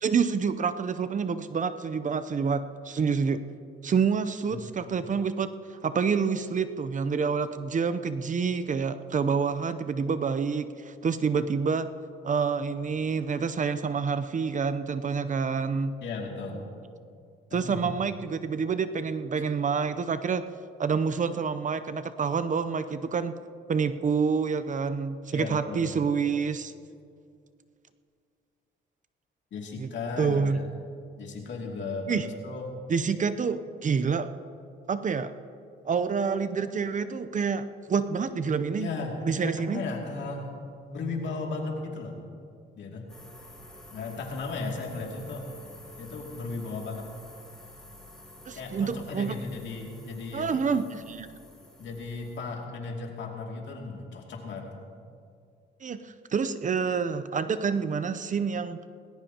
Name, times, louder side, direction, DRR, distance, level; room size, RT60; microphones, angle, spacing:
voice 1, 0.0-3.4 3.8-5.5 5.8-11.9 12.2-15.9 17.5-20.4 20.8-23.3 23.7-26.7 29.8-29.9 30.2-30.6 32.1-32.2 32.9-34.3 34.9-35.3 35.8-38.9 39.2-39.8 48.5-49.3 50.3-51.3 55.8-58.8, right 5 dB, 40° right, 12 dB, 0.7 m, -27 dB
voice 2, 16.0-16.6 17.5-17.8 25.3-25.9 29.5-30.7 31.2-32.7 38.8-40.5 40.9-42.2 42.8-43.1 43.9-45.5 46.0-47.1 48.5-50.6 51.8-54.7, left 3 dB, 70° left, 0 dB, 2.6 m, -35 dB
sound 1, 43.1-52.4, left 1 dB, 5° left, 4.5 m, -49 dB
19.5 x 17.5 x 2.9 m, 2.3 s
cardioid pair, 90°, 20 cm